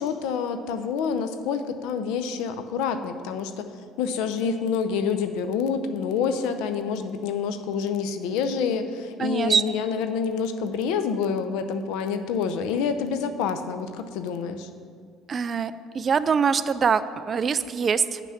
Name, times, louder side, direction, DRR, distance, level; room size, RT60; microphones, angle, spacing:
voice 1, 0.0-3.7 4.0-14.7, left 6 dB, 85° left, 9 dB, 0.6 m, -27 dB
voice 2, 9.2-9.6 15.3-18.2, right 6 dB, 35° right, 14 dB, 0.4 m, -24 dB
9.7 x 6.0 x 5.7 m, 2.1 s
cardioid pair, 120°, 0 cm